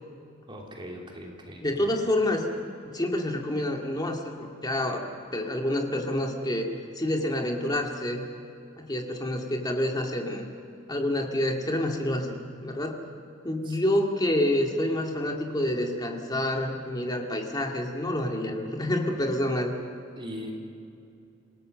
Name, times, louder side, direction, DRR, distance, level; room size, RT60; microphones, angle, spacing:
voice 1, 0.5-1.9 13.6-13.8 20.2-20.6, equal, 25° right, 0 dB, 3.2 m, -40 dB
voice 2, 1.6-2.5 2.8-5.0 5.3-6.7 7.0-8.2 8.8-10.5 10.9-13.0 13.4-19.7, left 1 dB, 20° left, 2 dB, 2.3 m, -28 dB
27.0 x 17.5 x 6.6 m, 2.6 s
head